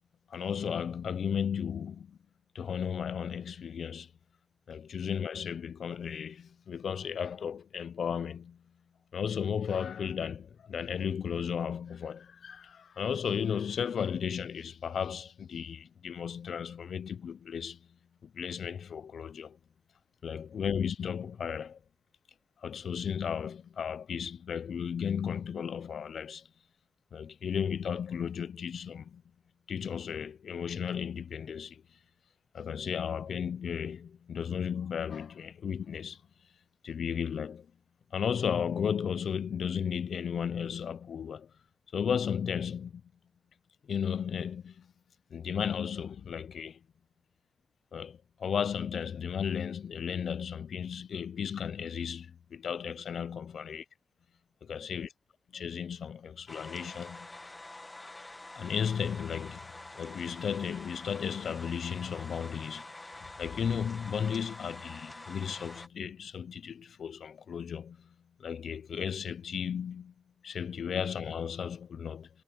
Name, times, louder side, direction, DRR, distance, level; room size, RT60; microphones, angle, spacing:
voice 1, 0.3-2.2 2.5-4.1 4.7-8.6 9.1-17.8 18.2-19.6 20.2-21.8 22.6-26.5 27.1-29.2 29.7-31.8 32.5-36.2 36.8-37.7 38.1-41.5 41.9-43.0 43.9-44.9 45.3-46.8 47.9-53.8 54.7-55.1 55.5-57.3 58.6-59.7 60.0-62.8 63.2-68.1 68.4-70.1 70.4-72.3, left 7 dB, 75° left, 0.5 m, -34 dB
sound 1, 56.5-65.9, left 2 dB, 20° left, 1.4 m, -47 dB
wide cardioid pair, 105°, 0 cm